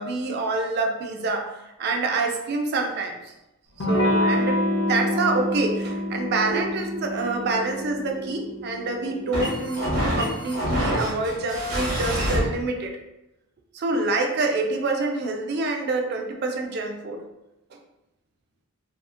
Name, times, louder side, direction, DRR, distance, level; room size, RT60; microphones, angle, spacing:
voice 1, 0.0-1.5 1.8-3.2 3.9-13.0 13.7-17.2 17.7-17.8, right 3 dB, 50° right, 3 dB, 0.4 m, -27 dB
Electric guitar / Strum, 3.8-9.2, left 1 dB, 60° left, 0.6 m, -26 dB
sound 1, 6.5-12.4, equal, 80° right, 0.9 m, -28 dB
2.8 x 2.3 x 2.4 m, 0.93 s
head